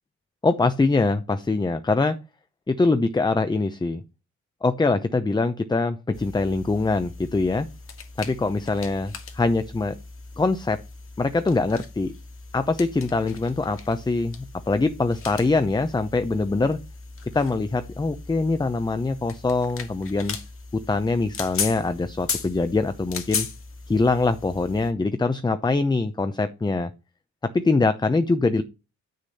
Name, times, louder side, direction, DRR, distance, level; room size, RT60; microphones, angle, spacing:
voice 1, 0.4-2.2 2.7-4.0 4.6-7.7 8.2-9.9 10.4-10.8 11.2-12.1 12.5-14.3 14.7-16.8 17.3-20.4 20.7-23.5 23.9-26.9 27.5-28.6, left 3 dB, 15° left, 10 dB, 0.8 m, -23 dB
sound 1, 6.1-24.9, left 5 dB, 45° left, 2.1 m, -37 dB
8.2 x 6.6 x 4.2 m, 0.30 s
cardioid pair, 90°, 30 cm